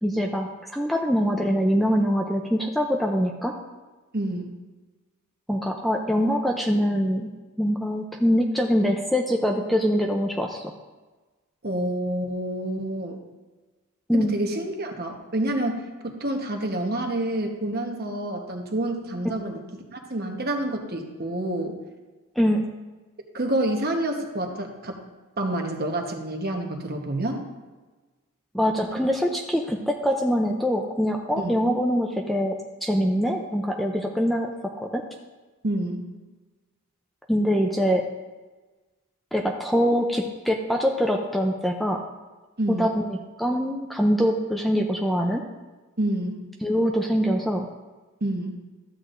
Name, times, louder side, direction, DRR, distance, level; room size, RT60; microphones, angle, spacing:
voice 1, 0.0-3.5 5.5-7.3 7.6-10.7 14.1-14.3 22.4-22.7 28.5-35.0 37.3-38.0 39.3-42.0 42.7-43.1 43.4-45.4 46.6-47.7, equal, ahead, 1 dB, 0.4 m, -24 dB
voice 2, 4.1-4.5 11.6-13.2 14.1-19.6 19.9-21.7 23.3-25.0 25.4-27.4 31.4-31.5 35.6-36.0 42.6-42.9 46.0-46.4 48.2-48.6, right 1 dB, 45° right, 3 dB, 1.1 m, -28 dB
13.0 x 8.1 x 2.6 m, 1.2 s
head